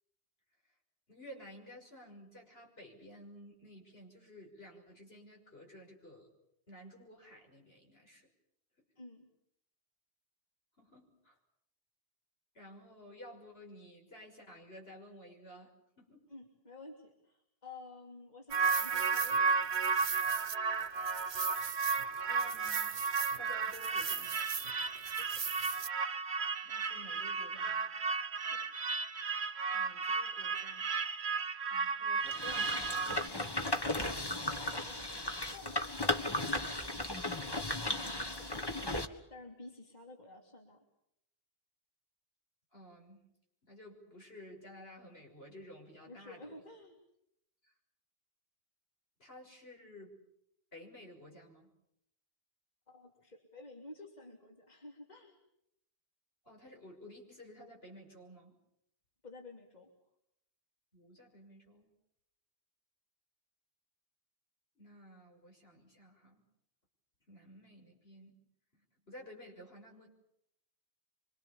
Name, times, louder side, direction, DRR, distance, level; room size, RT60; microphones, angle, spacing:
voice 1, 1.1-6.3 6.7-8.3 10.8-11.4 12.5-16.3 22.2-23.0 23.3-24.4 26.6-27.9 29.7-30.9 31.7-33.3 42.7-43.2 43.6-46.5 47.6-47.7 49.2-50.2 50.7-51.7 56.4-58.5 60.9-61.9 64.8-66.4 67.3-68.4 69.1-70.1, equal, 75° left, 1 dB, 6.5 m, -53 dB
voice 2, 9.0-9.3 16.3-19.7 25.2-25.4 28.4-28.7 34.3-35.1 35.5-38.8 39.3-40.8 46.1-47.0 52.9-55.4 59.2-59.9, left 2 dB, 45° left, 1 dB, 3.2 m, -52 dB
sound 1, 18.5-33.3, right 5 dB, 85° right, 1.5 m, -33 dB
sound 2, 32.3-39.1, left 1 dB, 25° left, 1.7 m, -35 dB
26.0 x 25.5 x 7.1 m, 0.76 s
omnidirectional pair, 1.0 m